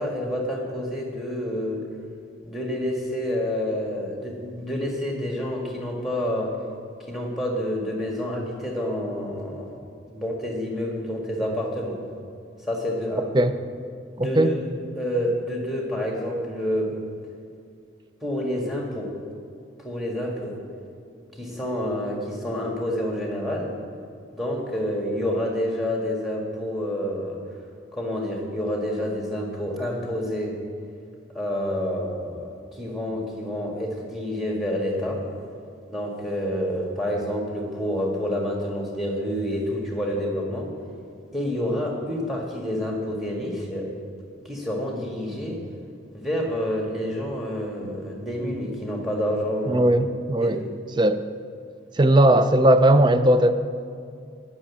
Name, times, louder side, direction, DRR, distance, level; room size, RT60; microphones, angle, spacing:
voice 1, 0.0-1.8 2.4-6.5 7.1-9.8 10.1-12.0 12.6-13.3 14.1-14.7 14.9-16.9 18.2-19.2 19.8-20.6 21.4-23.7 24.3-27.4 27.9-30.6 31.3-35.2 35.9-40.7 41.3-43.9 44.4-45.6 46.1-49.8 50.4-50.7, equal, ahead, -1 dB, 1.7 m, -28 dB
voice 2, 14.2-14.6 49.7-50.6 51.0-51.2 51.9-53.5, right 1 dB, 25° right, 10 dB, 0.4 m, -18 dB
10.0 x 6.3 x 8.4 m, 2.4 s
head